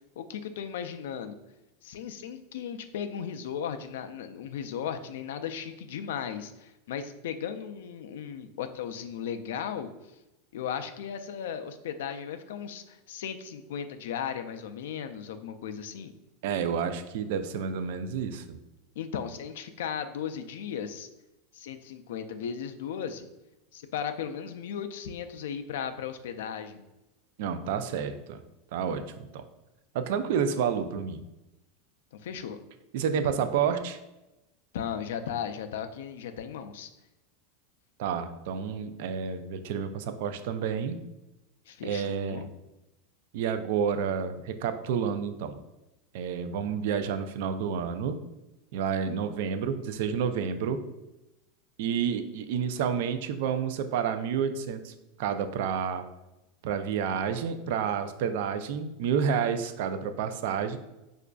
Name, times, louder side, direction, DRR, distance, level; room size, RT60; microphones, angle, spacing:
voice 1, 0.2-1.4 1.8-9.9 10.5-16.1 19.0-21.1 21.5-23.3 23.7-26.8 32.2-32.6 34.7-36.9 41.7-42.5, left 8 dB, 80° left, 8 dB, 0.3 m, -36 dB
voice 2, 16.4-18.6 27.4-28.4 28.7-29.4 29.9-31.2 32.9-34.0 38.0-41.0 41.8-42.5 43.3-45.6 46.1-48.2 48.7-50.8 51.8-54.9 55.2-56.0 56.6-60.8, right 7 dB, 55° right, 9 dB, 0.3 m, -30 dB
4.9 x 2.4 x 2.2 m, 0.97 s
supercardioid pair, 170°, 0 cm